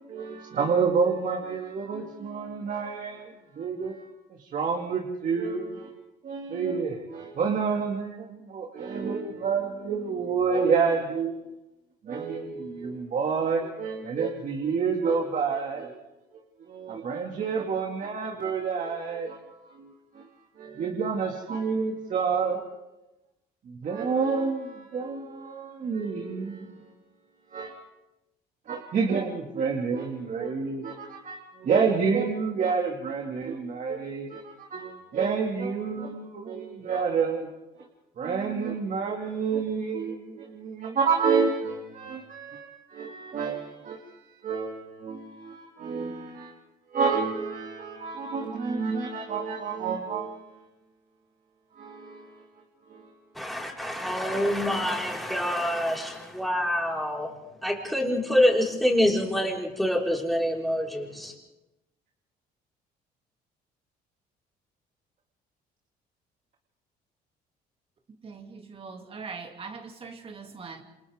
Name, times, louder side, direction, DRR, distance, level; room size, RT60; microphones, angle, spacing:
voice 1, 0.1-5.9 6.2-11.4 12.0-16.0 16.6-20.3 20.6-22.7 23.7-26.8 27.5-27.7 28.7-37.5 38.2-46.6 46.9-50.7 51.7-52.4 52.9-53.1, right 5 dB, 50° right, 2.2 m, -29 dB
voice 2, 53.3-57.3 57.6-61.3, left 1 dB, ahead, 4.8 m, -26 dB
voice 3, 68.2-70.8, right 5 dB, 35° right, 2.6 m, -41 dB
28.0 x 27.5 x 3.6 m
cardioid pair, 110°, 17 cm